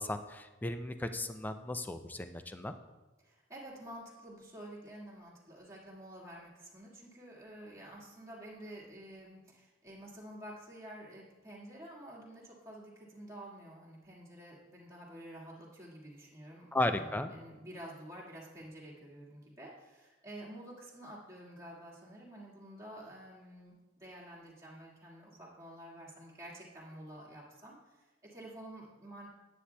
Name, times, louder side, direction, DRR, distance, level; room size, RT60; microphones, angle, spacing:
voice 1, 0.0-2.7 16.7-17.3, left 1 dB, 10° left, 8 dB, 0.4 m, -35 dB
voice 2, 3.2-29.3, right 1 dB, 15° right, -6 dB, 1.8 m, -50 dB
9.9 x 8.2 x 2.3 m, 1.2 s
head